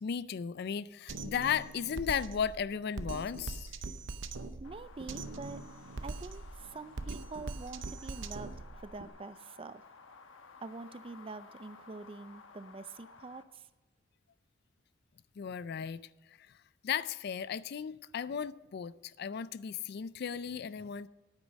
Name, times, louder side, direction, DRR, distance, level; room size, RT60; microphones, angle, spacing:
voice 1, 0.0-3.8 15.4-16.6 16.8-21.1, left 7 dB, 55° left, 0.4 m, -36 dB
Drum kit, 1.1-9.1, right 3 dB, 65° right, 0.7 m, -42 dB
sound 1, 4.6-13.4, left 4 dB, 75° left, 1.1 m, -55 dB
voice 2, 4.6-5.6 6.0-9.8 10.6-13.7, right 3 dB, 25° right, 0.4 m, -46 dB
9.4 x 9.0 x 6.2 m
head